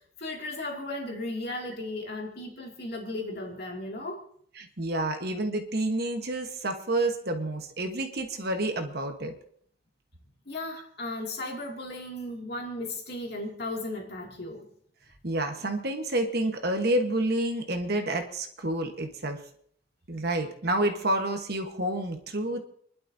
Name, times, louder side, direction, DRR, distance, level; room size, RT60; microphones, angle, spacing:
voice 1, 0.0-4.2 10.5-14.7, left 2 dB, 55° left, -1 dB, 2.5 m, -36 dB
voice 2, 4.6-9.3 15.2-19.4 20.1-22.6, right 1 dB, 50° right, 5 dB, 1.3 m, -29 dB
29.5 x 11.5 x 2.7 m, 0.64 s
head